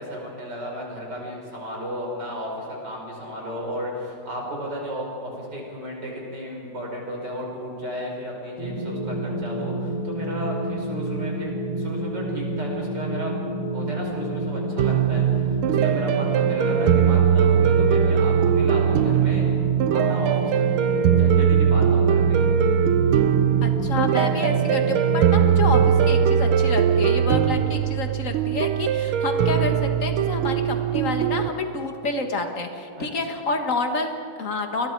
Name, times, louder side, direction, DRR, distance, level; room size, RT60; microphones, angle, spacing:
voice 1, 0.0-11.5 11.8-13.4 13.7-19.4 19.9-20.7 21.2-22.4 33.0-33.1, equal, 50° right, -1 dB, 5.8 m, -34 dB
sound 1, 8.6-25.9, right 1 dB, 60° left, 3.7 m, -29 dB
sound 2, 14.8-31.5, right 8 dB, 75° right, 1.6 m, -20 dB
voice 2, 23.6-34.9, left 3 dB, 40° left, 5 dB, 1.9 m, -29 dB
29.5 x 22.0 x 4.7 m, 2.9 s
omnidirectional pair, 2.4 m